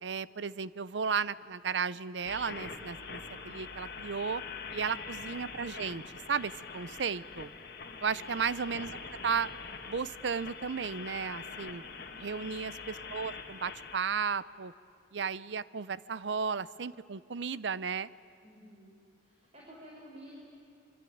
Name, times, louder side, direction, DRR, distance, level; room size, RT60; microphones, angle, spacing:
voice 1, 0.0-4.4 4.7-6.0 6.3-7.5 8.0-9.5 9.9-11.8 12.2-14.7 15.1-18.1, right 6 dB, 85° right, 18 dB, 0.6 m, -34 dB
sound 1, 2.3-14.0, left 5 dB, 60° left, 2.1 m, -44 dB
voice 2, 12.1-12.5 18.4-18.9 19.2-20.4, equal, 35° right, -3 dB, 5.2 m, -53 dB
26.0 x 24.5 x 9.4 m, 2.5 s
head